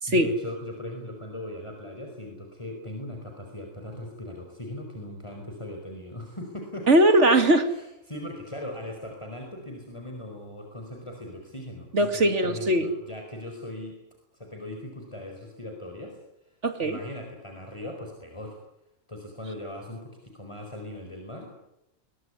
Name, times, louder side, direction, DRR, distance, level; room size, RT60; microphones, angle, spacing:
voice 1, 0.1-6.9 7.7-14.0 14.3-16.2 16.5-18.6 19.1-21.6, left 1 dB, 20° left, 2 dB, 4.7 m, -39 dB
voice 2, 6.9-7.7 11.9-12.9 16.6-17.0, right 1 dB, 60° right, 9 dB, 2.7 m, -20 dB
22.5 x 21.5 x 9.8 m, 0.88 s
omnidirectional pair, 1.3 m